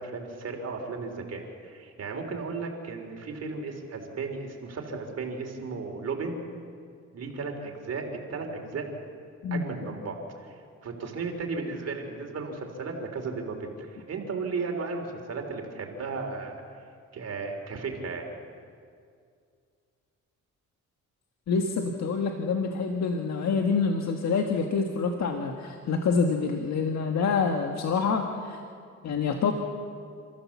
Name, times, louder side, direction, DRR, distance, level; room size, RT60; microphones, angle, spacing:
voice 1, 0.0-6.4 7.1-8.8 9.5-10.2 10.4-16.6 17.1-18.3, right 4 dB, 55° right, 2 dB, 3.6 m, -35 dB
voice 2, 21.5-28.6 29.0-29.5, left 5 dB, 65° left, 3 dB, 1.7 m, -26 dB
30.0 x 14.0 x 7.3 m, 2.3 s
cardioid pair, 90°, 30 cm